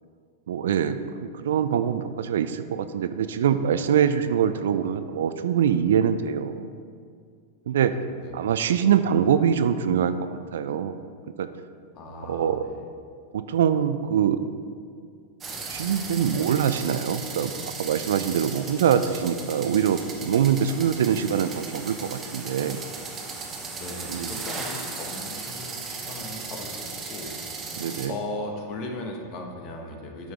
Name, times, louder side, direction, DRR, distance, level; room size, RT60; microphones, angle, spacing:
voice 1, 0.5-6.7 7.7-7.9 8.3-11.0 11.4-11.5 12.3-12.6 13.3-14.4 15.7-17.5 17.8-22.8 24.1-24.3 27.8-28.1, right 8 dB, 65° right, 11 dB, 0.4 m, -24 dB
voice 2, 11.9-12.8 23.8-27.3 28.1-30.3, left 2 dB, 45° left, 2 dB, 1.2 m, -37 dB
sound 1, 15.4-28.1, right 4 dB, 25° right, 1.2 m, -36 dB
9.2 x 6.2 x 3.5 m, 2.1 s
figure-of-eight pair, 95°, 0 cm